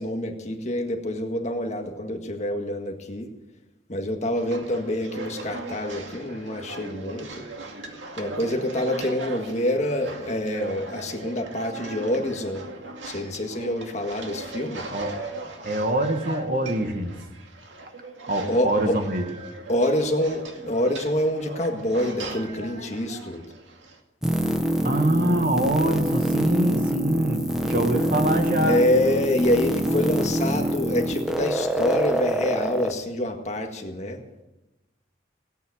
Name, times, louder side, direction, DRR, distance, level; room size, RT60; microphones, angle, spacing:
voice 1, 0.0-3.3 3.9-7.4 8.2-12.7 13.0-14.9 18.5-19.0 19.7-23.5 28.6-34.2, left 1 dB, 40° left, 3 dB, 1.8 m, -26 dB
sound 1, 4.3-24.0, right 2 dB, 90° right, 2.2 m, -39 dB
voice 2, 15.6-17.1 18.2-19.2 24.8-28.8, right 1 dB, 50° right, 5 dB, 1.7 m, -24 dB
sound 2, 24.2-32.9, right 1 dB, 5° right, 0.9 m, -25 dB
17.5 x 9.5 x 8.0 m, 1.0 s
head